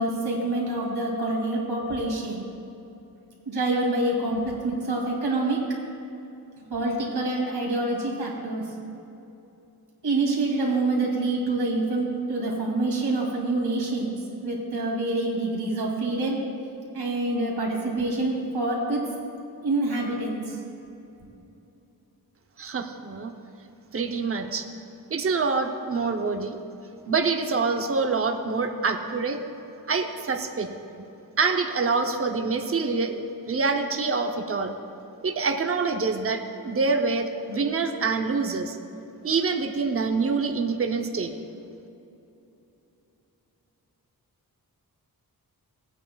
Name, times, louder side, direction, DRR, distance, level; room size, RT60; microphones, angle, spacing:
voice 1, 0.0-2.4 3.4-5.8 6.7-8.8 10.0-14.1 14.4-16.5 16.9-19.1 19.6-20.6, right 2 dB, 90° right, -2 dB, 2.6 m, -26 dB
voice 2, 22.6-23.3 23.9-24.7 25.1-26.6 27.1-29.4 29.9-30.7 31.4-34.7 35.2-38.8 39.2-41.3, right 4 dB, 35° right, 5 dB, 0.7 m, -26 dB
18.5 x 8.9 x 2.3 m, 2.9 s
wide cardioid pair, 155°, 37 cm